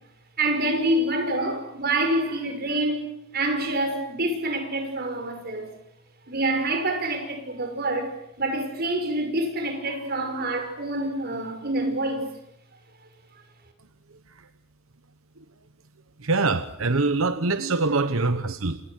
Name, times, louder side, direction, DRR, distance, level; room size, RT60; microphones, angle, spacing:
voice 1, 0.4-3.0 3.3-5.7 6.3-12.3, right 1 dB, 50° right, 6.0 m, -26 dB
voice 2, 16.2-18.8, right 3 dB, 80° right, 1.1 m, -24 dB
28.5 x 28.0 x 6.5 m
head